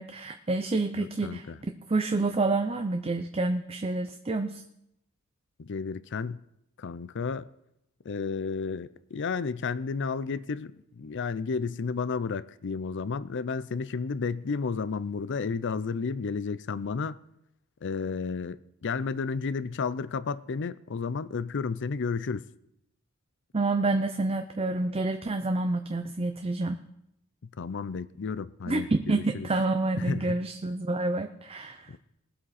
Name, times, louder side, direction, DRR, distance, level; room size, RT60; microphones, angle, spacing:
voice 1, 0.0-1.4 1.9-4.6 23.5-26.8 28.7-31.9, right 2 dB, 25° right, 0.6 m, -28 dB
voice 2, 1.0-1.6 5.6-6.4 6.8-7.5 8.0-17.2 17.8-22.5 27.6-29.5 30.0-30.4 31.9-32.0, left 5 dB, 55° left, 0.5 m, -32 dB
20.0 x 7.7 x 4.2 m
head